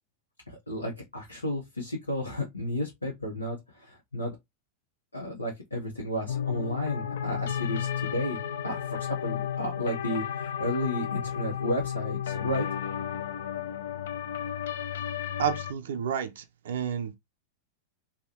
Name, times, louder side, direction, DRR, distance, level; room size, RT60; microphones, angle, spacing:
voice 1, 0.5-4.3 5.1-12.7, equal, 80° left, 0.9 m, -33 dB
sound 1, 6.3-15.7, left 9 dB, 60° left, 0.3 m, -33 dB
voice 2, 15.4-17.2, right 8 dB, 60° right, 0.4 m, -30 dB
3.5 x 2.2 x 2.7 m
figure-of-eight pair, 90°, 0 cm